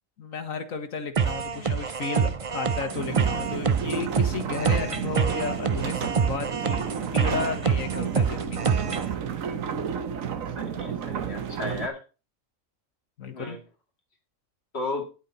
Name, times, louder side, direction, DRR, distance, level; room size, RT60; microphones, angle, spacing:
voice 1, 0.2-8.8 13.2-13.6 14.9-15.0, left 5 dB, 85° left, 8 dB, 1.8 m, -34 dB
sound 1, 1.1-9.1, right 6 dB, 40° right, 0.5 m, -26 dB
sound 2, 2.9-11.9, right 7 dB, 85° right, 1.4 m, -32 dB
voice 2, 10.6-12.0 13.2-13.6 14.7-15.1, left 3 dB, 50° left, 3 dB, 2.4 m, -34 dB
10.5 x 8.5 x 4.1 m, 0.32 s
omnidirectional pair, 1.4 m